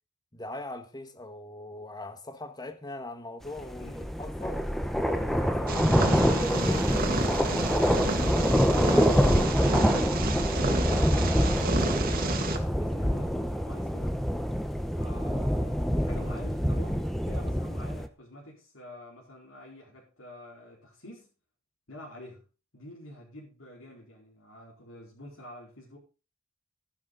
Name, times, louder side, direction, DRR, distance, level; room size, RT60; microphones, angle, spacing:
voice 1, 0.3-4.6 5.2-7.1 7.7-7.9 16.1-16.2, left 2 dB, 20° left, 1.4 m, -41 dB
sound 1, 3.6-18.1, equal, ahead, 0.9 m, -26 dB
voice 2, 3.8-4.1 7.1-8.4 8.8-12.3 12.7-14.3 15.0-21.3 21.9-22.4 22.7-26.0, left 1 dB, 85° left, 4.6 m, -47 dB
Purr, 5.7-12.6, right 3 dB, 45° right, 2.0 m, -31 dB
sound 2, 6.4-9.4, right 1 dB, 20° right, 1.5 m, -46 dB
13.5 x 10.5 x 4.0 m
head